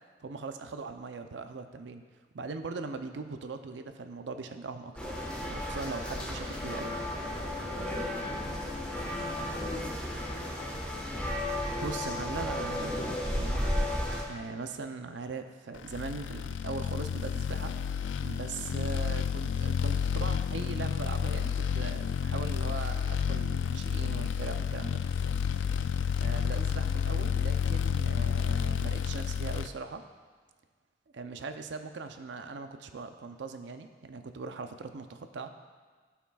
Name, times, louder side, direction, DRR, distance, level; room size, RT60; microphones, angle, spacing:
voice 1, 0.2-2.0 2.3-7.1 11.8-13.9 14.3-17.7 18.2-25.0 26.2-30.0 31.1-35.5, right 4 dB, 70° right, 7 dB, 0.5 m, -40 dB
sound 1, 5.0-14.2, left 1 dB, 5° left, 1.2 m, -33 dB
voice 2, 7.7-11.0, equal, 30° left, -2 dB, 1.7 m, -48 dB
sound 2, 15.9-29.7, left 7 dB, 85° left, 0.3 m, -30 dB
16.5 x 5.8 x 2.3 m, 1.5 s
head